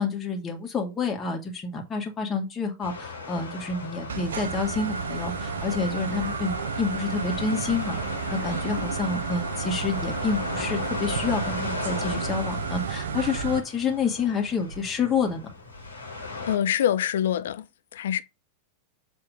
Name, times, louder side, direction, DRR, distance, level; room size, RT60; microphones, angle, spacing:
voice 1, 0.0-8.0 8.3-15.5, left 5 dB, 20° left, 2.1 m, -28 dB
sound 1, 2.8-16.6, left 3 dB, 80° left, 2.2 m, -37 dB
sound 2, 4.1-13.6, right 5 dB, 65° right, 0.7 m, -32 dB
voice 2, 16.5-17.7 17.9-18.2, left 10 dB, 60° left, 0.6 m, -25 dB
7.7 x 3.5 x 4.7 m
figure-of-eight pair, 90°, 0 cm